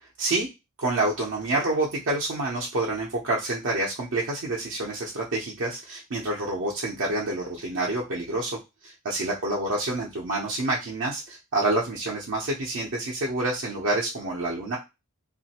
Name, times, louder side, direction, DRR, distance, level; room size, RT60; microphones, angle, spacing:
voice 1, 0.8-8.6 8.8-14.8, right 2 dB, 65° right, -3 dB, 0.7 m, -28 dB
3.0 x 2.5 x 2.8 m, 0.24 s
head